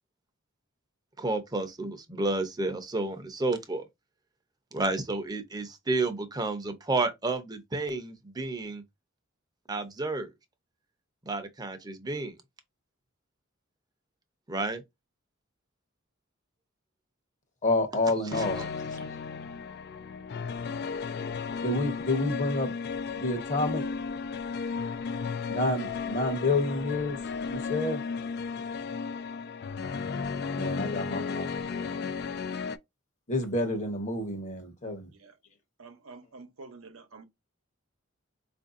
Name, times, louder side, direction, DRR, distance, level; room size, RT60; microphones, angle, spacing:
voice 1, 1.2-3.8 4.7-8.8 9.7-10.3 11.2-12.3 14.5-14.8 18.6-18.7, right 2 dB, 20° right, 0.7 m, -31 dB
voice 2, 17.6-18.6 21.6-22.7 23.1-23.8 25.5-27.2 27.5-28.0 30.5-32.2 33.3-35.1, left 2 dB, 35° left, 0.9 m, -29 dB
sound 1, 18.3-32.8, left 5 dB, 55° left, 0.4 m, -34 dB
voice 3, 35.8-37.2, right 3 dB, 80° right, 0.8 m, -48 dB
4.4 x 2.6 x 2.5 m
head